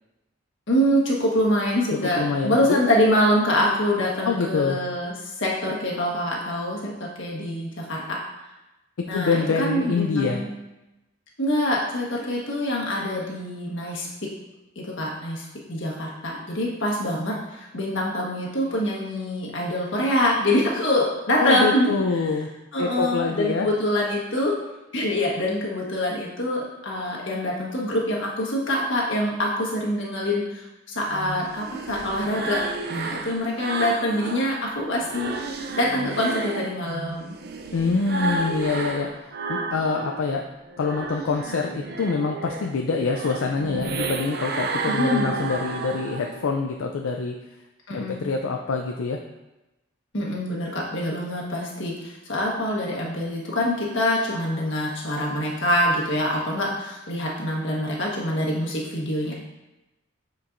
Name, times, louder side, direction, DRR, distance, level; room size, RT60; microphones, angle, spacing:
voice 1, 0.7-8.2 9.1-10.5 11.4-14.1 14.7-21.9 22.7-24.5 24.9-32.6 32.9-35.3 35.8-37.3 44.9-45.3 47.9-48.2 50.1-59.3, left 1 dB, 65° left, -3 dB, 1.4 m, -25 dB
voice 2, 2.0-2.8 4.2-4.8 9.1-10.4 21.4-22.5 22.8-23.7 37.7-40.4 40.8-47.3 47.9-49.2, left 4 dB, 85° left, 2 dB, 0.4 m, -25 dB
sound 1, 31.1-34.5 34.9-40.3 40.6-46.5, right 3 dB, 50° right, 0.4 m, -32 dB
8.5 x 4.6 x 2.6 m, 0.99 s
head